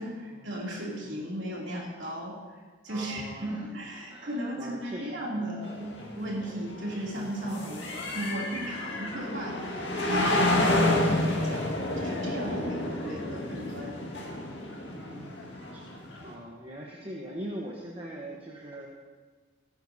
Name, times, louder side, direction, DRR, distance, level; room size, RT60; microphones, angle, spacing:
voice 1, 0.0-14.0, right 1 dB, 75° right, -3 dB, 2.8 m, -36 dB
voice 2, 2.9-3.7 4.1-5.5 6.4-6.5 6.8-7.0 7.4-8.2 14.9-18.9, right 1 dB, 30° right, -3 dB, 1.0 m, -42 dB
sound 1, 5.6-16.3, left 1 dB, 65° left, 1.8 m, -30 dB
16.5 x 9.4 x 2.7 m, 1.4 s
head